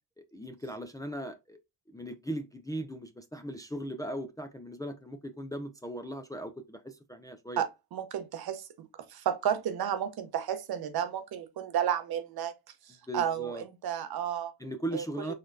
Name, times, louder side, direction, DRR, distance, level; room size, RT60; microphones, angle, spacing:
voice 1, 0.2-1.6 1.9-7.6 13.1-13.6 14.6-15.3, right 1 dB, 10° left, 0.5 m, -38 dB
voice 2, 7.6-8.7 9.1-12.5 12.9-14.5 14.9-15.3, right 9 dB, 60° right, 0.8 m, -32 dB
4.0 x 3.2 x 2.6 m
cardioid pair, 80°, 43 cm